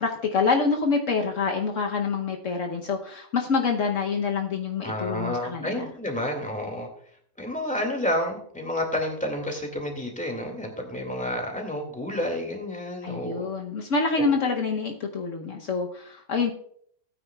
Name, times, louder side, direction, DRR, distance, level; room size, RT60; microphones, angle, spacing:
voice 1, 0.0-5.9 13.0-16.5, left 4 dB, 65° left, 3 dB, 1.3 m, -26 dB
voice 2, 4.8-6.9 7.4-13.5 14.2-14.3, left 1 dB, 5° left, 2 dB, 2.1 m, -30 dB
17.0 x 9.2 x 2.3 m, 0.62 s
omnidirectional pair, 1.4 m